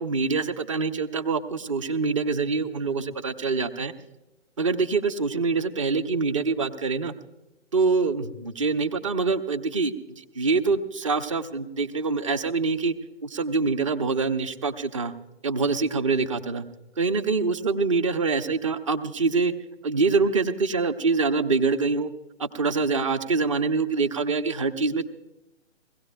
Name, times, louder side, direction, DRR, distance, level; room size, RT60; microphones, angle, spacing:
voice 1, 0.0-3.9 4.6-7.1 7.7-12.9 13.2-15.1 15.4-16.7 17.0-19.5 19.8-22.1 22.4-25.0, right 4 dB, 25° right, 12 dB, 0.6 m, -25 dB
22.0 x 17.0 x 2.2 m, 1.0 s
figure-of-eight pair, 140°, 37 cm